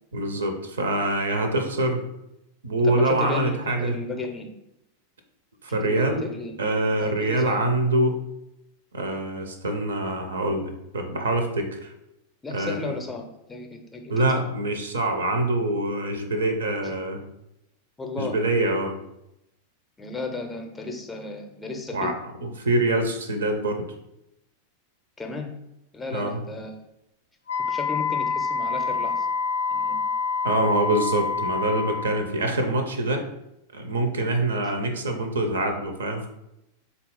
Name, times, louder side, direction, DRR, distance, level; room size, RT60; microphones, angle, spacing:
voice 1, 0.1-2.0 2.6-4.0 5.6-6.3 6.6-8.2 8.9-11.9 12.5-12.9 14.1-17.2 18.2-19.0 21.9-22.1 22.4-23.9 26.1-26.4 30.4-33.2 33.7-36.3, right 1 dB, 70° right, 6 dB, 0.5 m, -25 dB
voice 2, 2.8-4.5 5.8-6.6 7.0-7.7 12.4-14.1 16.8-16.9 18.0-18.4 20.0-22.2 25.2-25.5 25.9-26.8 27.7-29.3 29.7-30.1, left 3 dB, 15° left, 3 dB, 0.5 m, -34 dB
Wind instrument woodwind instrument, 27.5-32.3, left 5 dB, 70° left, 0.4 m, -27 dB
4.0 x 2.3 x 3.8 m, 0.86 s
figure-of-eight pair, 90°, 0 cm